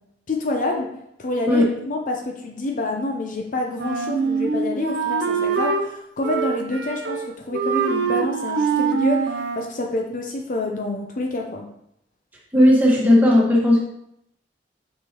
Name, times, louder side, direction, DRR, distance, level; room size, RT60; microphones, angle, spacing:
voice 1, 0.3-0.9 1.2-11.7, left 2 dB, 45° left, 2 dB, 0.6 m, -27 dB
Wind instrument woodwind instrument, 3.8-5.9 6.2-7.3 7.5-9.7, right 5 dB, 70° right, 0.6 m, -24 dB
voice 2, 12.5-13.8, left 1 dB, 10° right, -4 dB, 1.5 m, -15 dB
6.3 x 5.6 x 2.9 m, 0.75 s
head